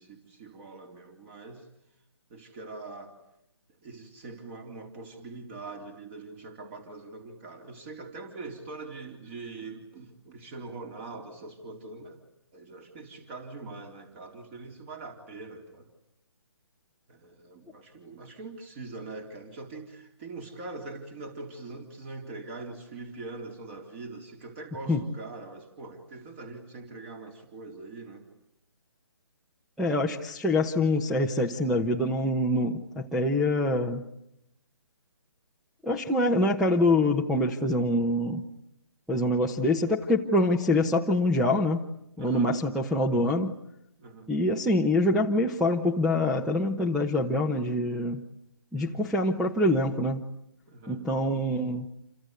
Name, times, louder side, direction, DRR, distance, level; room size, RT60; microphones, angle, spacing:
voice 1, 0.0-1.7 2.3-3.2 3.8-12.2 12.5-15.9 17.1-28.3 42.2-42.5 44.0-44.3 50.7-51.0, right 3 dB, 30° right, 3.8 m, -43 dB
voice 2, 29.8-34.1 35.8-38.4 39.1-41.8 42.2-43.6 44.3-48.3 48.7-50.2 50.9-51.9, left 1 dB, ahead, 1.1 m, -25 dB
28.5 x 25.5 x 8.1 m
figure-of-eight pair, 150°, 14 cm